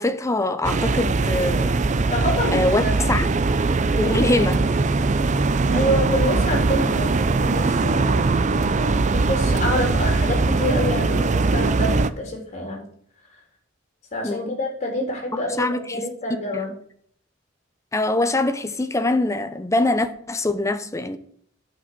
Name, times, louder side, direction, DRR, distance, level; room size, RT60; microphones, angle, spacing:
voice 1, 0.0-1.8 2.5-3.3 4.0-4.6 14.2-14.6 15.3-16.1 17.9-21.2, left 2 dB, 15° left, 0.7 m, -23 dB
Plaza Espana Binaural, 0.6-12.1, right 3 dB, 40° right, 0.5 m, -21 dB
voice 2, 2.1-3.2 4.0-4.1 5.7-12.8 14.1-16.7, equal, 35° left, 3.6 m, -27 dB
9.9 x 6.1 x 6.7 m
head